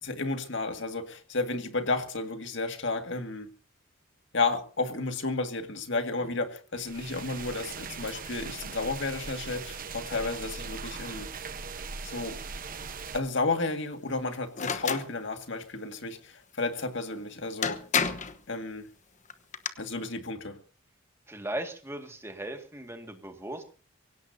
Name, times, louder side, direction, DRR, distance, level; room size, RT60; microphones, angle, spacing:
voice 1, 0.0-3.5 4.3-11.3 12.0-12.4 13.1-17.8 18.5-18.9 19.8-20.6, left 3 dB, 60° left, 6 dB, 2.1 m, -32 dB
sound 1, 6.7-13.2, right 5 dB, 45° right, 1.1 m, -40 dB
sound 2, 14.6-15.1 17.1-17.2 17.6-18.4 19.3-19.7, left 6 dB, 35° left, 1.1 m, -29 dB
voice 2, 21.3-23.6, right 1 dB, 15° right, 5 dB, 2.0 m, -38 dB
24.0 x 17.0 x 2.8 m, 0.37 s
head